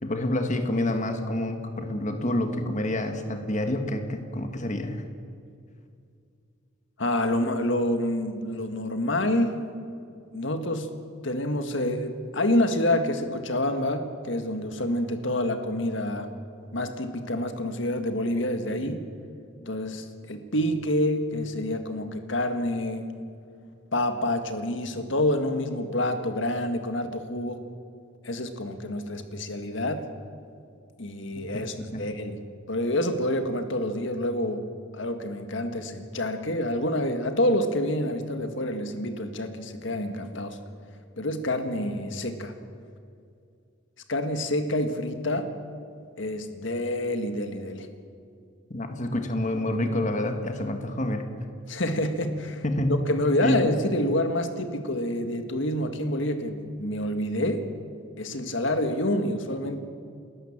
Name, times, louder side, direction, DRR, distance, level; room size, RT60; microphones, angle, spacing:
voice 1, 0.0-5.0 31.5-32.0 48.7-51.3 52.6-53.1 53.4-53.7, left 1 dB, 40° left, 6 dB, 1.6 m, -28 dB
voice 2, 7.0-9.6 10.3-10.9 11.2-16.3 16.7-19.0 19.6-23.1 23.9-27.6 28.2-30.0 31.0-32.4 32.7-34.6 34.9-40.6 41.2-42.5 44.1-45.5 46.2-47.9 51.7-52.6 53.0-57.6 58.2-59.8, left 1 dB, 65° left, 7 dB, 1.8 m, -27 dB
30.0 x 13.0 x 7.3 m, 2.4 s
head